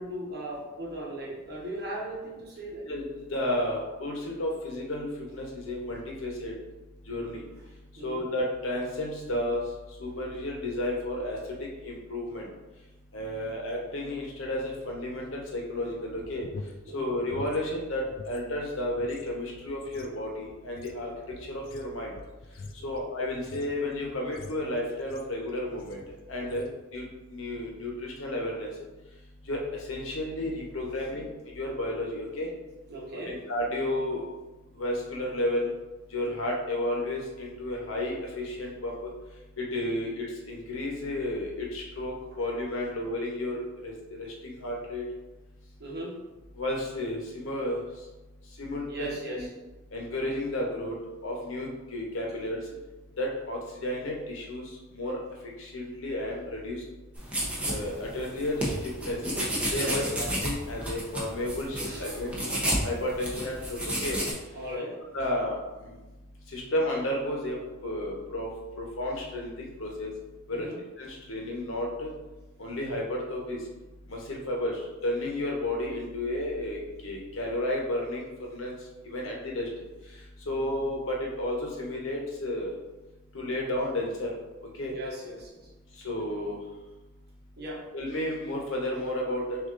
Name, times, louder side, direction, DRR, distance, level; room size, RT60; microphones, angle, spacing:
voice 1, 0.0-2.9 8.0-8.2 16.8-17.1 22.8-23.0 26.4-26.7 32.9-33.4 45.8-46.2 48.9-49.5 59.7-60.1 61.9-62.0 64.5-65.0 70.5-70.8 84.9-85.5 87.6-87.8, right 1 dB, 50° right, -3 dB, 1.2 m, -38 dB
voice 2, 3.3-6.5 7.1-7.4 8.0-9.6 10.0-12.5 13.1-16.5 16.9-21.1 21.5-22.1 22.8-26.0 26.3-26.7 26.9-27.0 27.3-28.7 29.5-29.6 29.9-32.5 33.1-34.3 34.8-35.7 36.1-39.1 39.6-43.6 43.8-45.0 46.6-47.8 48.6-49.4 49.9-51.0 51.2-52.6 53.2-54.6 54.9-55.2 55.6-56.8 57.7-59.2 59.7-62.5 62.8-64.2 65.1-65.9 66.5-68.5 68.8-70.1 70.5-70.7 71.0-72.1 72.6-73.6 74.1-78.8 79.0-79.7 80.5-82.7 83.3-84.3 84.8-84.9 86.0-86.6 87.9-89.6, left 1 dB, 65° left, -1 dB, 1.0 m, -32 dB
sound 1, 16.1-18.4 18.7-25.4 25.8-26.1 26.4-26.8, left 3 dB, 45° left, 0.4 m, -46 dB
sound 2, 57.1-64.3, equal, 5° right, 0.8 m, -32 dB
6.3 x 2.6 x 2.6 m, 1.1 s
head